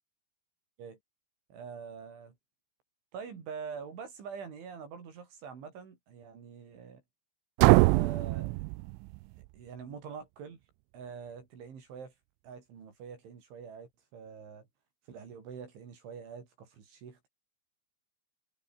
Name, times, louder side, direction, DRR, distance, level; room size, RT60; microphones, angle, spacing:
voice 1, 1.5-2.3 3.1-7.0 7.9-8.6 9.5-10.6 10.9-12.1 12.4-14.7 15.1-17.3, right 6 dB, 75° right, 7.1 m, -45 dB
sound 1, 7.6-9.5, right 24 dB, 90° right, 3.1 m, -24 dB
omnidirectional pair, 5.6 m